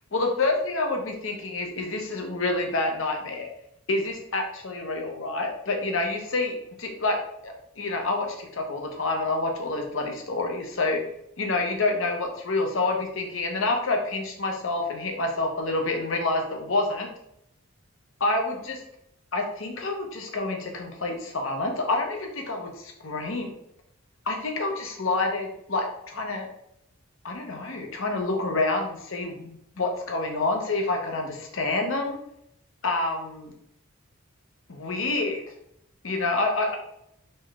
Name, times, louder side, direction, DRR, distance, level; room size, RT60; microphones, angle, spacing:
voice 1, 0.1-3.5 3.9-7.2 7.4-11.0 11.4-17.1 18.2-18.8 19.3-23.5 24.3-26.5 27.2-32.2 32.8-33.5 34.7-35.4 36.0-36.8, left 2 dB, 65° left, 3 dB, 0.9 m, -28 dB
4.3 x 3.2 x 3.5 m, 0.77 s
head